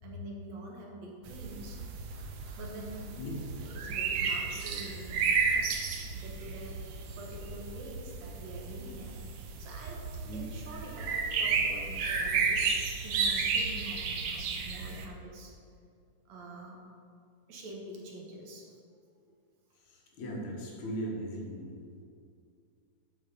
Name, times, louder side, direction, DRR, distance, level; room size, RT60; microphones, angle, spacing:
voice 1, 0.0-1.8 2.6-3.1 3.7-6.8 7.2-9.2 9.6-15.5 16.3-16.8 17.5-18.7, right 1 dB, 70° right, -1 dB, 2.4 m, -46 dB
sound 1, 1.3-15.0, right 5 dB, 90° right, 1.1 m, -33 dB
voice 2, 19.8-22.0, equal, 70° left, -2 dB, 2.6 m, -39 dB
7.4 x 5.0 x 6.7 m, 2.3 s
omnidirectional pair, 3.4 m